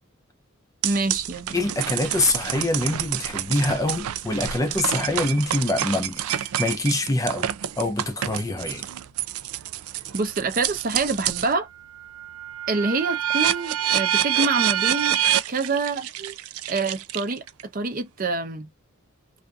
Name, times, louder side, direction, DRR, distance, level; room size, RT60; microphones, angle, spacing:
voice 1, 0.8-1.7 10.1-11.7 12.7-15.2 15.5-16.4 16.7-17.4 17.7-18.7, right 3 dB, 40° right, 0.6 m, -26 dB
sound 1, 0.8-11.5 12.0-17.6, right 11 dB, 85° right, 0.3 m, -27 dB
voice 2, 1.5-7.5 7.8-8.8, left 2 dB, 15° left, 0.5 m, -25 dB
2.6 x 2.5 x 2.3 m
head